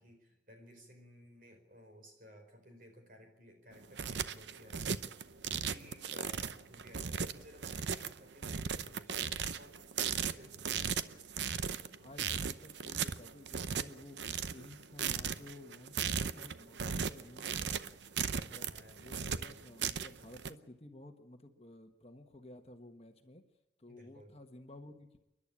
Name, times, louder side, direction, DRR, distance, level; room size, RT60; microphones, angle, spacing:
voice 1, 0.0-4.9 5.5-10.7 18.3-19.0 23.9-24.4, equal, 50° right, 4 dB, 4.8 m, -57 dB
sound 1, 3.7-20.5, right 7 dB, 85° right, 0.8 m, -37 dB
voice 2, 11.8-17.9 18.4-23.4 23.8-25.2, left 1 dB, 35° left, 5 dB, 1.4 m, -54 dB
28.5 x 11.5 x 8.7 m, 0.97 s
head